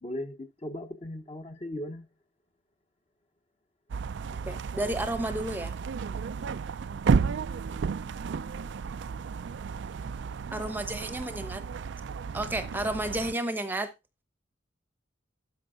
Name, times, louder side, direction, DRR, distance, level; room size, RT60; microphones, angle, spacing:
voice 1, 0.0-2.1, left 1 dB, 35° left, 1.2 m, -37 dB
sound 1, 3.9-13.3, right 5 dB, 65° right, 0.4 m, -32 dB
voice 2, 4.5-5.7 10.5-11.6 12.3-13.9, right 1 dB, 10° right, 0.9 m, -31 dB
12.0 x 5.3 x 3.8 m
head